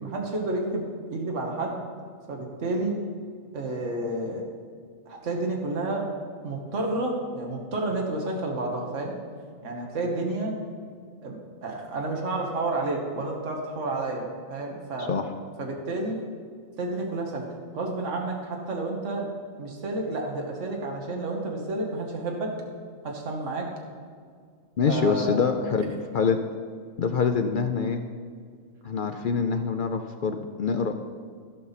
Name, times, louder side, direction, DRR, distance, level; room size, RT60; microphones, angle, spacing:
voice 1, 0.0-1.8 2.3-3.0 3.5-4.4 5.1-6.1 6.4-9.1 9.6-10.5 11.2-11.4 11.6-15.1 15.6-16.2 16.8-17.4 17.7-19.3 19.6-22.5 23.0-23.7 24.9-25.5, right 2 dB, 65° right, 0 dB, 1.6 m, -30 dB
voice 2, 24.8-26.4 27.0-28.0 28.8-30.9, left 5 dB, 60° left, 6 dB, 0.5 m, -25 dB
15.5 x 5.6 x 4.1 m, 2.1 s
omnidirectional pair, 1.4 m